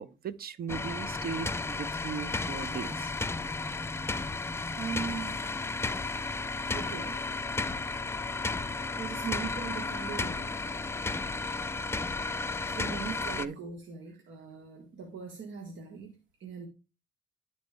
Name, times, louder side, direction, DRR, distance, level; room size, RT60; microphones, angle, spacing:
voice 1, 0.0-3.1 13.4-13.6, right 6 dB, 50° right, 0.7 m, -38 dB
sound 1, 0.7-13.5, left 3 dB, 15° left, 0.4 m, -33 dB
voice 2, 4.8-5.4 6.7-7.2 9.0-10.6 12.7-16.1 16.4-16.7, right 6 dB, 70° right, 1.5 m, -40 dB
10.5 x 4.2 x 3.4 m
cardioid pair, 90°, 20 cm